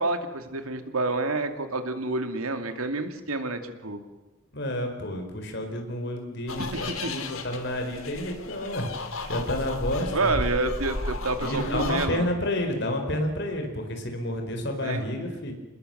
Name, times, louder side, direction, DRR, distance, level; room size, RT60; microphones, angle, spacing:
voice 1, 0.0-4.0 6.6-7.1 10.1-12.3 14.8-15.0, right 3 dB, 80° right, 8 dB, 2.4 m, -29 dB
voice 2, 4.5-10.4 11.4-15.5, left 1 dB, 50° left, 4 dB, 4.7 m, -30 dB
sound 1, 6.5-12.1, left 2 dB, 75° left, 2.8 m, -34 dB
28.0 x 20.5 x 7.9 m, 1.1 s
head